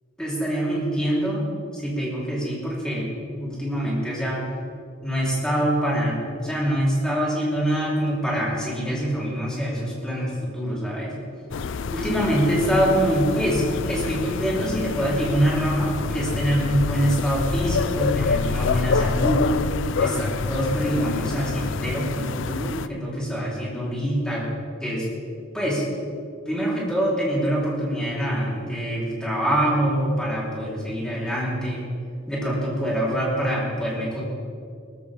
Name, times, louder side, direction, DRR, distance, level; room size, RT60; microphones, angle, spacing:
voice 1, 0.2-1.4 1.7-4.4 5.0-11.2 11.9-19.5 20.0-24.5 24.8-25.1 25.5-25.8 26.5-31.9 32.3-34.2, equal, 5° left, -6 dB, 4.2 m, -25 dB
sound 1, 11.5-22.9, left 5 dB, 65° left, 0.4 m, -27 dB
18.5 x 14.5 x 3.8 m, 2.4 s
head